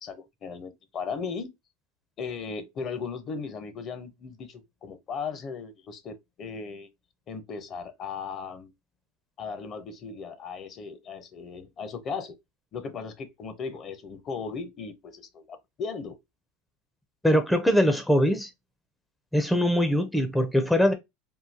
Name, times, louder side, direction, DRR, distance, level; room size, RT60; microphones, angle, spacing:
voice 1, 0.0-1.5 2.2-6.9 7.3-8.7 9.4-12.4 12.7-16.2, left 5 dB, 40° left, 0.7 m, -37 dB
voice 2, 17.2-18.5 19.3-20.9, equal, 5° left, 0.5 m, -22 dB
3.7 x 2.3 x 2.7 m
supercardioid pair, 110°, 0 cm